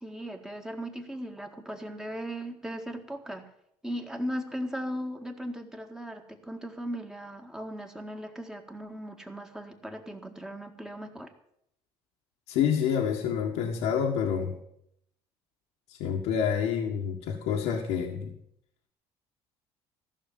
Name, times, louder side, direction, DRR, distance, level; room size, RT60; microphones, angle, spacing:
voice 1, 0.0-3.4 3.8-11.3, equal, 5° right, 4 dB, 1.8 m, -37 dB
voice 2, 12.5-14.5 15.9-18.4, left 7 dB, 85° left, 0 dB, 1.7 m, -28 dB
15.0 x 6.5 x 9.3 m, 0.73 s
cardioid pair, 120°, 11 cm